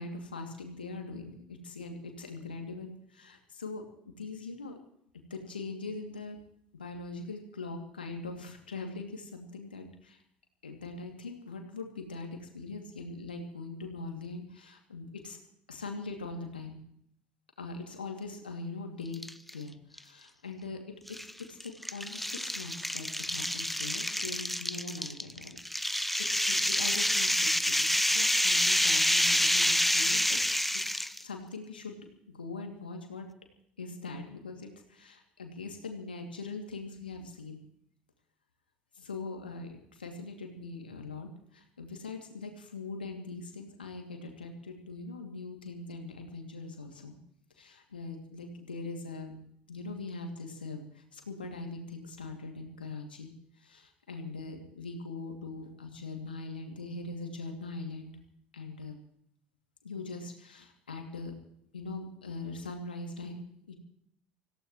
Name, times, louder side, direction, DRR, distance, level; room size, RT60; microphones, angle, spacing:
voice 1, 0.0-3.8 4.2-4.8 5.3-6.4 6.7-10.2 10.6-15.4 15.7-16.8 17.6-19.2 19.5-25.6 25.9-27.8 28.1-30.4 30.8-32.0 32.3-33.3 33.8-37.6 39.0-47.2 47.6-49.4 49.7-53.3 53.6-58.1 58.5-59.0 59.8-61.3 61.7-63.4 63.7-63.8, left 3 dB, 80° left, 3 dB, 2.6 m, -41 dB
sound 1, 19.1-19.5 20.0-20.1 21.1-31.2, equal, ahead, 0.7 m, -28 dB
26.0 x 16.5 x 3.2 m, 0.71 s
figure-of-eight pair, 65°, 5 cm